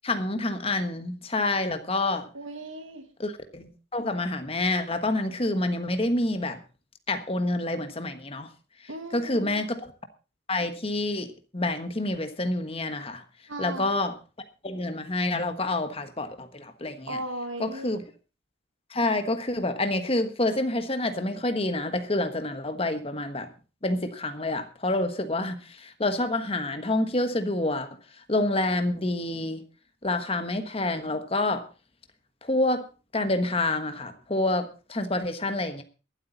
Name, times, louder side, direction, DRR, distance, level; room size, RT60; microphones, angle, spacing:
voice 1, 0.0-2.3 3.2-6.6 7.1-8.5 9.1-9.9 10.5-13.2 13.6-14.2 14.6-17.2 17.6-18.0 18.9-23.5 23.8-29.6 30.0-31.7 32.4-32.9 33.1-35.8, left 2 dB, 30° left, 8 dB, 1.3 m, -28 dB
voice 2, 2.3-3.1 8.9-9.6 13.5-13.9 17.1-17.9, right 1 dB, 75° right, 6 dB, 2.3 m, -36 dB
22.5 x 8.3 x 4.1 m, 0.33 s
head